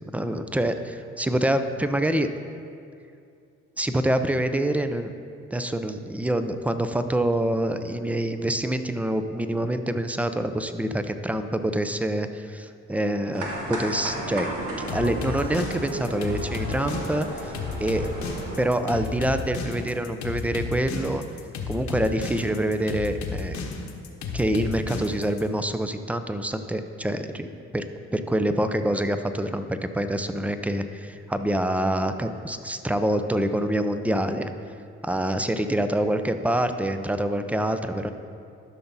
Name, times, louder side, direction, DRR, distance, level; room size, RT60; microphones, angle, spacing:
voice 1, 0.1-2.3 3.8-5.1 5.5-14.5 14.8-17.5 17.8-18.1 18.6-21.2 21.7-23.6 24.3-27.5 27.7-27.8 28.1-34.5 35.0-38.1, right 1 dB, 5° right, 9 dB, 0.4 m, -26 dB
sound 1, 13.3-18.7, right 2 dB, 85° right, 1.5 m, -34 dB
sound 2, 14.9-25.4, left 5 dB, 70° left, 1.1 m, -33 dB
12.5 x 5.8 x 4.1 m, 2.4 s
cardioid pair, 90°, 30 cm